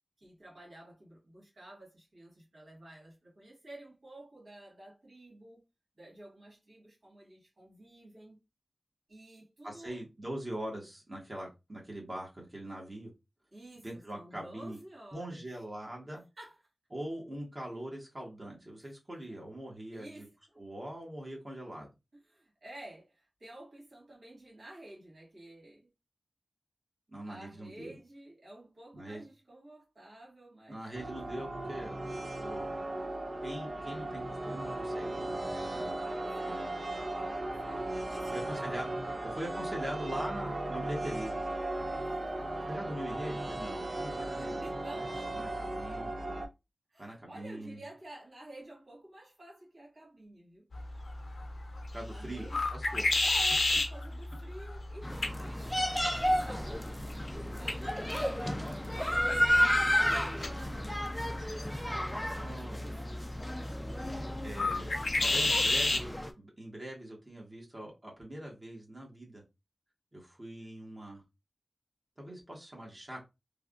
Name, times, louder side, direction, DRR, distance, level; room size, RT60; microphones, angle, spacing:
voice 1, 0.2-5.6 6.0-8.4 9.1-10.0 13.5-15.4 16.4-16.6 18.8-18.9 19.3-19.4 19.9-20.6 22.1-25.9 27.2-30.8 35.3-36.8 37.2-39.2 42.4-42.6 44.3-45.5 46.9-50.6 52.0-52.6 53.2-61.1 61.9-63.2 63.9-65.0, right 1 dB, 75° right, 1.9 m, -51 dB
voice 2, 9.6-13.1 13.8-14.8 15.1-16.2 16.9-20.2 20.6-21.9 27.1-27.9 28.9-29.2 30.7-32.7 33.4-35.4 35.7-36.0 36.4-36.7 38.3-38.9 39.2-41.3 42.7-45.1 45.3-46.1 47.0-47.8 51.9-53.0 62.3-63.0 64.1-66.1 66.4-69.4 70.1-71.2 72.2-73.2, right 1 dB, 35° right, 1.2 m, -42 dB
sound 1, 30.9-46.5, right 2 dB, 50° right, 0.6 m, -37 dB
sound 2, 50.7-66.1, left 2 dB, 80° left, 0.7 m, -34 dB
sound 3, 55.0-66.3, equal, 10° left, 0.4 m, -32 dB
3.3 x 2.3 x 2.4 m
wide cardioid pair, 55°, 0 cm